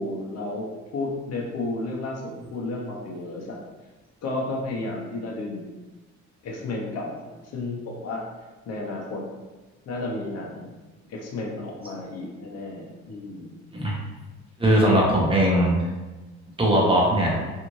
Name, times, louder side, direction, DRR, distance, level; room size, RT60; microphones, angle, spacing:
voice 1, 0.0-3.6 4.2-5.8 6.4-8.2 8.7-9.3 9.9-10.7 11.1-13.5, left 2 dB, 55° left, -2 dB, 0.7 m, -32 dB
voice 2, 14.6-15.7 16.6-17.3, right 1 dB, 20° right, -4 dB, 0.9 m, -19 dB
2.6 x 2.5 x 3.0 m, 1.2 s
cardioid pair, 90°, 30 cm